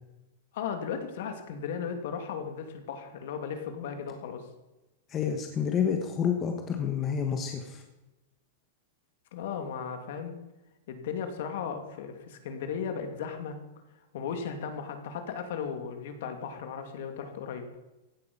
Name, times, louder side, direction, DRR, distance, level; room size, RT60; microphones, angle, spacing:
voice 1, 0.5-4.4 9.3-10.3 10.9-13.6 14.1-17.6, left 6 dB, 55° left, 6 dB, 2.3 m, -36 dB
voice 2, 5.1-7.8, left 7 dB, 15° left, 4 dB, 1.1 m, -29 dB
16.0 x 11.5 x 5.4 m, 1.0 s
supercardioid pair, 175°, 0 cm